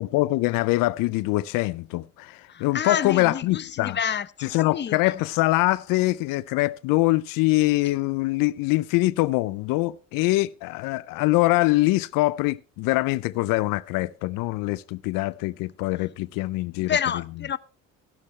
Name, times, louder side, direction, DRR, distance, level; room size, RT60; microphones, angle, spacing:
voice 1, 0.0-4.0 4.4-17.0, left 19 dB, 80° left, 0.5 m, -24 dB
voice 2, 2.5-5.0 16.9-17.6, left 8 dB, 35° left, 0.7 m, -28 dB
15.5 x 11.5 x 3.2 m
supercardioid pair, 75°, 33 cm